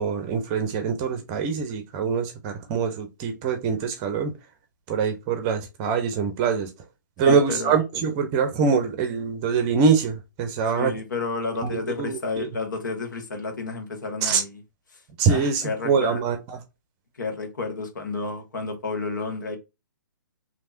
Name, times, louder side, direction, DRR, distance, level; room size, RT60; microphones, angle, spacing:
voice 1, 0.0-4.3 4.9-6.7 7.2-10.9 11.6-12.5 14.2-14.4 15.2-16.6, right 5 dB, 30° right, 0.7 m, -24 dB
voice 2, 7.2-7.8 10.7-14.6 15.3-16.2 17.2-19.6, left 3 dB, 75° left, 1.2 m, -31 dB
3.3 x 2.8 x 2.6 m
hypercardioid pair, 130°, 10 cm